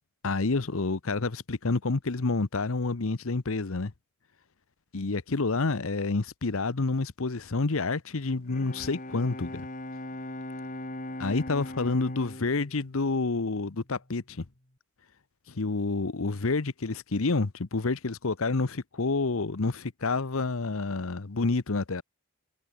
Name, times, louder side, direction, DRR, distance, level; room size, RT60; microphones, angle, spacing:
voice 1, 0.2-3.9 4.9-9.7 11.2-14.4 15.5-22.0, left 3 dB, 70° left, 0.9 m, -28 dB
Bowed string instrument, 8.4-14.0, left 1 dB, 35° left, 2.7 m, -40 dB
head